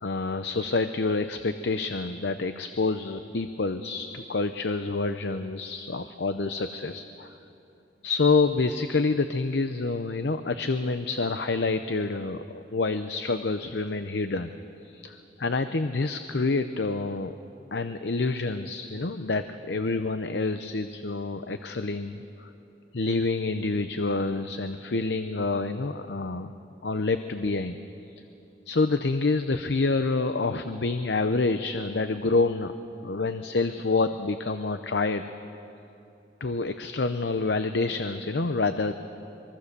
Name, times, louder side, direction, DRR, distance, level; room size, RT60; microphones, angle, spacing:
voice 1, 0.0-7.4 8.0-14.5 14.8-17.4 17.7-22.5 22.9-26.5 26.8-27.8 28.7-32.7 33.0-35.3 36.4-38.9, left 3 dB, 75° left, 9 dB, 0.7 m, -27 dB
24.5 x 22.5 x 6.8 m, 2.8 s
head